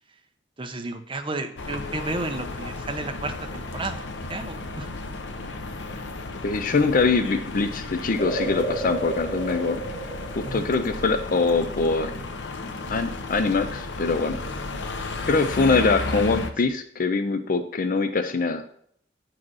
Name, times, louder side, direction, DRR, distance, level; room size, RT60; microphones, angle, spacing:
voice 1, 0.6-4.9 10.4-10.7 16.0-16.4, right 2 dB, 30° right, 6 dB, 0.9 m, -33 dB
sound 1, 1.6-16.5, left 3 dB, 85° left, 0.9 m, -34 dB
voice 2, 6.4-9.8 10.4-12.1 12.9-14.4 15.3-18.6, left 4 dB, 50° left, 9 dB, 0.5 m, -23 dB
sound 2, 8.2-11.9 12.2-12.3, right 2 dB, 15° left, 2.8 m, -33 dB
9.9 x 4.8 x 6.2 m, 0.66 s
head